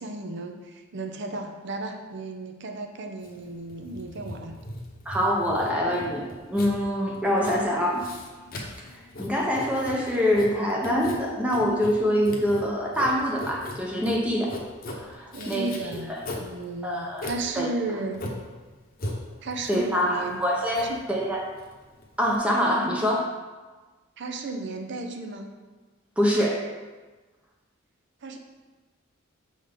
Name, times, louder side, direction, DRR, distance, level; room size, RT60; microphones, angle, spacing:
voice 1, 0.0-4.5 15.3-16.1 16.4-18.2 19.4-20.4 20.7-21.0 24.2-25.5 28.2-28.4, right 2 dB, 60° right, 4 dB, 0.7 m, -34 dB
Writing, 3.2-22.4, left 1 dB, 45° left, 1.0 m, -39 dB
voice 2, 5.1-8.1 9.2-14.5 14.9-15.7 16.1-16.2 16.8-17.3 17.6-17.7 19.7-21.5 22.2-23.4 26.2-26.6, equal, 5° right, -2 dB, 0.7 m, -25 dB
6.5 x 3.9 x 5.1 m, 1.3 s
head